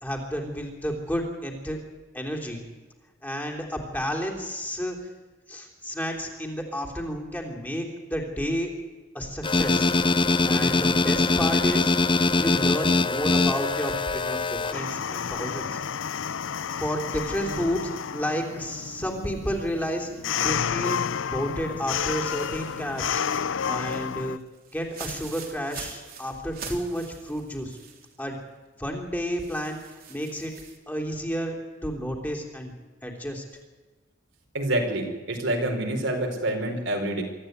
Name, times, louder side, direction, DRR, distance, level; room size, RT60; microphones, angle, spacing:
voice 1, 0.0-1.8 2.1-2.6 3.2-5.0 5.5-8.7 9.1-9.9 10.5-11.9 12.4-15.8 16.8-20.1 20.4-23.2 23.6-24.4 24.7-27.8 28.2-28.4 28.8-29.8 30.1-30.5 30.9-31.6 31.8-32.7 33.0-33.4, equal, 10° left, 1 dB, 3.4 m, -31 dB
sound 1, 9.4-14.7, left 3 dB, 25° left, 0.7 m, -22 dB
sound 2, 14.7-24.4, left 7 dB, 85° left, 0.6 m, -31 dB
sound 3, 21.9-28.2 28.5-28.6 29.4-30.8, right 6 dB, 50° right, 3.3 m, -44 dB
voice 2, 34.5-37.2, right 1 dB, 75° right, 2 dB, 4.5 m, -27 dB
24.5 x 13.5 x 9.5 m, 1.3 s
head